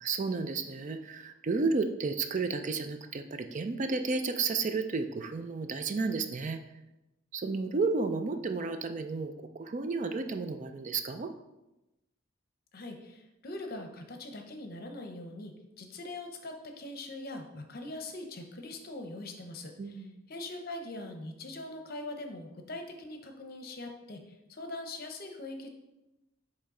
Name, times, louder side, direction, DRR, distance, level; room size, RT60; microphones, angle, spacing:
voice 1, 0.0-6.6 7.3-11.3 19.8-20.1, right 4 dB, 40° right, 8 dB, 0.4 m, -32 dB
voice 2, 12.7-25.7, left 2 dB, 50° left, 4 dB, 0.8 m, -42 dB
8.8 x 3.1 x 3.7 m, 0.96 s
head